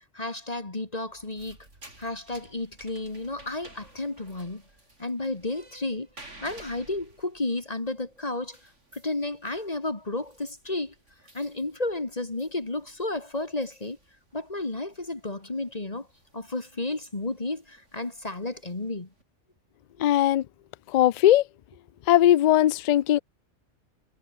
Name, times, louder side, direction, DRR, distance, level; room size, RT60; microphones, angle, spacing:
voice 1, 0.1-1.6 2.0-4.6 5.0-6.1 6.4-8.6 8.9-10.9 11.3-14.0 14.3-16.1 16.3-19.1, left 2 dB, 35° left, 2.1 m, -32 dB
sound 1, 1.1-19.2, right 2 dB, 90° right, 6.2 m, -55 dB
voice 2, 20.0-20.5 20.9-21.4 22.1-23.2, left 12 dB, 65° left, 0.4 m, -19 dB
omnidirectional pair, 1.2 m